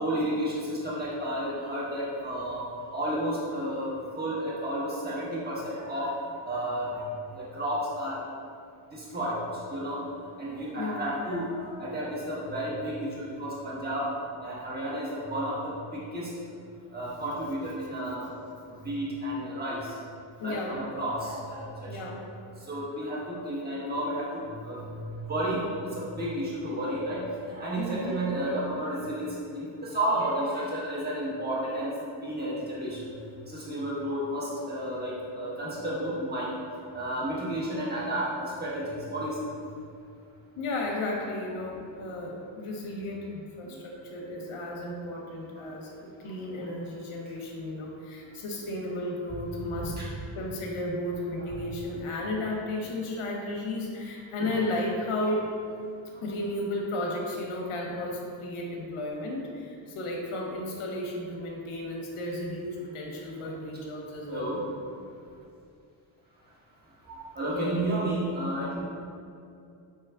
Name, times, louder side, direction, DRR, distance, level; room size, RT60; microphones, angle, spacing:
voice 1, 0.0-2.6 2.9-6.2 6.4-8.2 8.9-9.4 9.7-10.0 10.4-14.1 14.4-16.3 16.9-18.3 18.6-20.0 20.4-22.1 22.6-33.1 33.5-36.5 36.9-39.5 43.6-43.8 44.1-44.2 46.2-46.7 49.8-50.1 64.3-64.6 67.1-68.8, right 1 dB, 20° right, -7 dB, 1.3 m, -32 dB
voice 2, 20.4-20.8 21.9-22.3 27.8-28.2 40.6-50.0 50.3-55.5 56.2-64.5 67.5-67.9, left 1 dB, 85° left, -1 dB, 0.9 m, -34 dB
4.7 x 3.0 x 3.4 m, 2.5 s
cardioid pair, 90°, 48 cm